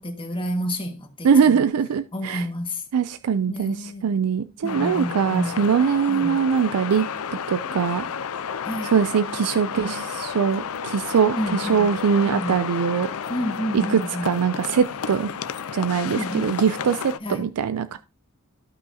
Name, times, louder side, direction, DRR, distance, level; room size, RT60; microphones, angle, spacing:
voice 1, 0.0-1.6 2.1-2.8 3.5-4.1 4.6-5.6 6.1-6.4 8.7-8.9 11.4-12.0 12.2-12.6 13.3-14.3 16.0-16.6 17.2-17.4, equal, 25° left, 1.6 m, -30 dB
voice 2, 1.2-2.4 2.9-7.1 7.5-8.1 8.8-13.1 13.7-15.3 15.7-18.0, right 6 dB, 80° right, 0.4 m, -22 dB
sound 1, 4.7-17.2, left 7 dB, 70° left, 0.5 m, -32 dB
14.5 x 5.6 x 2.7 m
head